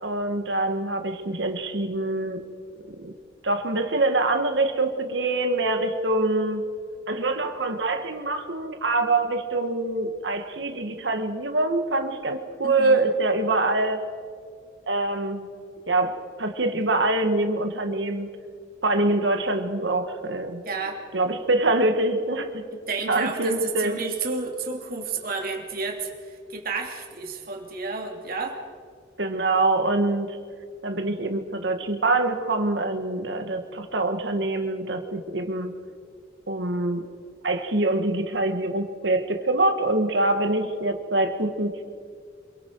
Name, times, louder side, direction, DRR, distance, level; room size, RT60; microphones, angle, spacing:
voice 1, 0.0-2.4 3.0-3.1 3.4-6.6 7.1-14.0 14.9-15.4 15.9-18.3 18.8-20.6 21.1-22.6 23.1-24.0 29.2-30.3 30.8-35.7 36.5-37.0 37.4-41.8, right 2 dB, 70° right, 6 dB, 1.7 m, -25 dB
voice 2, 12.6-13.0 20.6-21.0 22.7-28.6, right 4 dB, 50° right, 1 dB, 2.9 m, -31 dB
28.0 x 23.0 x 4.7 m, 2.1 s
head